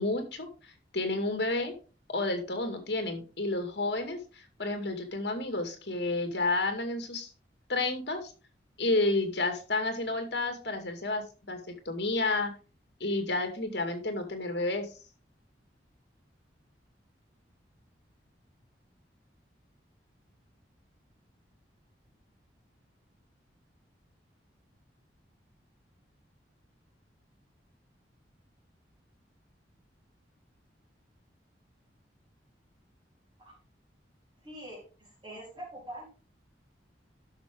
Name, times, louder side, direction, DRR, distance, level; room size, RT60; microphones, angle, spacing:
voice 1, 0.0-1.7 2.1-7.3 7.7-8.3 8.8-12.5 13.0-14.9, left 2 dB, 65° left, 6 dB, 2.2 m, -31 dB
voice 2, 34.4-36.1, right 1 dB, 25° right, -3 dB, 4.0 m, -44 dB
11.5 x 6.1 x 3.8 m, 0.35 s
head